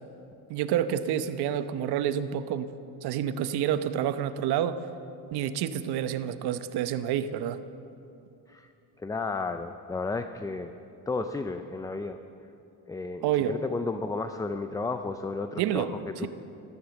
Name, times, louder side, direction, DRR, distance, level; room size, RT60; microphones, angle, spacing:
voice 1, 0.5-2.7 3.0-4.8 5.3-7.6 13.2-13.6 15.6-15.9, right 10 dB, 70° right, 11 dB, 0.9 m, -28 dB
voice 2, 9.0-10.7 11.1-12.2 12.9-16.3, left 3 dB, 10° left, 8 dB, 0.4 m, -33 dB
14.5 x 13.5 x 7.1 m, 2.7 s
cardioid pair, 130°, 39 cm